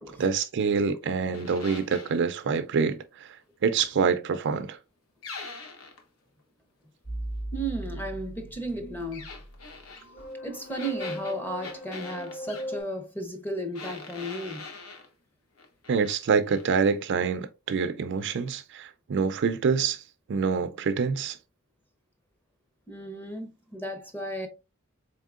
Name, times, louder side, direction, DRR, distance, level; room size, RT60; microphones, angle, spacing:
voice 1, 0.2-3.4 3.6-4.8 15.9-20.0 20.3-21.4, right 5 dB, 55° right, 0.4 m, -26 dB
sound 1, 1.3-2.2 5.2-6.0 9.1-10.0 10.7-12.7 13.7-15.1 15.6-16.2 16.5-16.8, left 4 dB, 75° left, 0.9 m, -42 dB
sound 2, 7.0-12.8, equal, 50° left, 1.3 m, -38 dB
voice 2, 7.5-9.3 10.4-14.7 22.9-24.5, right 1 dB, 10° left, 0.7 m, -34 dB
4.0 x 3.6 x 2.4 m
head